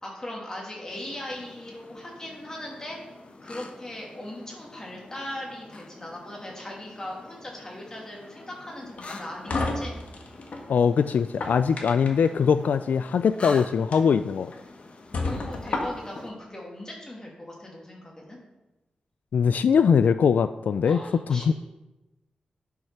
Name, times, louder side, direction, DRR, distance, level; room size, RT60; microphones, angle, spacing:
voice 1, 0.0-3.0 3.4-10.0 15.2-18.4 20.8-21.5, left 1 dB, 25° left, -2 dB, 2.7 m, -39 dB
sound 1, 0.9-16.3, left 2 dB, 45° left, 1.0 m, -46 dB
sound 2, 9.0-10.6 11.2-12.3 13.3-13.5 13.9-14.0 14.5-14.6 15.1-16.2, left 2 dB, 60° left, 1.5 m, -31 dB
voice 2, 10.7-14.5 19.3-21.0 21.3-21.5, left 6 dB, 80° left, 11 dB, 0.3 m, -21 dB
10.5 x 5.7 x 5.7 m, 1.0 s
wide cardioid pair, 125°, 3 cm